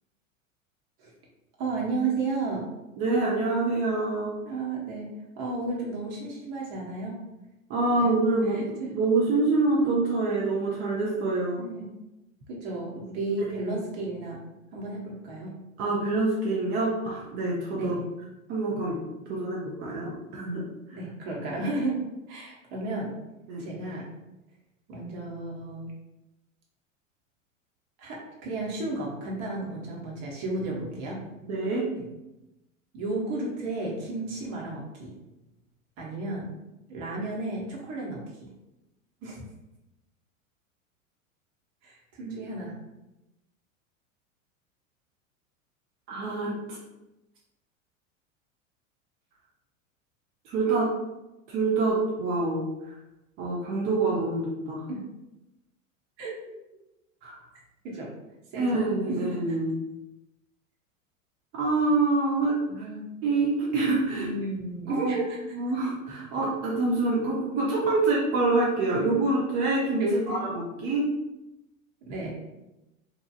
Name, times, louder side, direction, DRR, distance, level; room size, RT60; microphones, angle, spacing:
voice 1, 1.6-2.6 4.4-5.1 5.4-7.2 7.9-8.1 8.5-8.9 11.6-11.9 12.5-14.4 14.7-15.5 17.7-18.0 20.9-22.0 22.3-23.1 23.6-24.1 24.9-25.9 28.0-31.2 32.9-35.1 36.0-36.5 36.9-38.2 39.2-39.4 41.8-42.8 54.9-55.0 56.2-56.3 57.8-58.1 58.5-58.8 59.1-59.4 62.7-63.0 64.1-65.4 70.0-70.4 72.1-72.3, right 2 dB, 40° right, -3 dB, 1.0 m, -33 dB
voice 2, 3.0-4.3 7.7-11.6 13.7-13.8 15.8-17.9 18.5-19.0 19.3-20.6 20.9-21.0 23.5-23.6 31.4-31.9 42.2-42.3 46.1-46.8 50.5-50.9 51.5-52.7 53.4-54.8 57.2-57.4 58.6-59.8 61.5-62.8 63.2-64.3 64.9-65.2 65.6-71.0, right 3 dB, 25° right, -5 dB, 0.4 m, -26 dB
2.8 x 2.3 x 2.4 m, 0.97 s
figure-of-eight pair, 90°, 40 cm